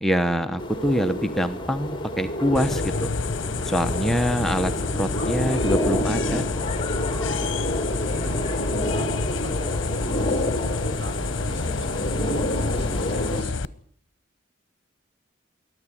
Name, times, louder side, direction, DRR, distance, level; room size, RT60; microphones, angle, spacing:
voice 1, 0.0-3.1 3.6-6.4, equal, ahead, 7 dB, 0.9 m, -25 dB
sound 1, 0.6-13.4, left 1 dB, 25° left, 3.0 m, -28 dB
sound 2, 2.5-13.7, left 4 dB, 80° left, 0.9 m, -29 dB
voice 2, 7.8-10.5 11.0-13.8, right 1 dB, 65° right, 5 dB, 6.8 m, -45 dB
23.0 x 13.5 x 9.9 m, 0.62 s
head